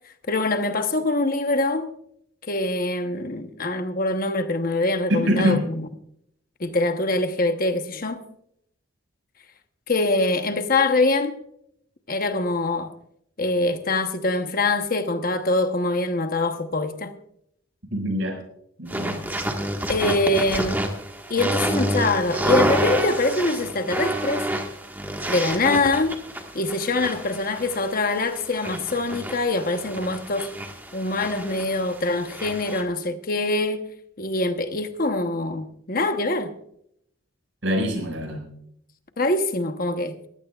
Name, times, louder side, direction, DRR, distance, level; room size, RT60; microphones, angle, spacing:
voice 1, 0.3-1.9 2.5-5.8 6.6-8.2 9.9-11.4 12.1-12.9 13.4-17.1 19.9-20.8 21.3-24.4 25.3-26.2 26.5-30.5 30.9-33.9 34.2-36.5 39.2-40.2, left 2 dB, 45° left, 1.0 m, -24 dB
voice 2, 5.1-5.6 17.9-18.4 18.8-19.2 37.6-38.4, equal, 70° right, 5.9 m, -24 dB
sound 1, 18.9-32.8, right 1 dB, 10° right, 1.6 m, -29 dB
21.5 x 15.5 x 2.4 m
head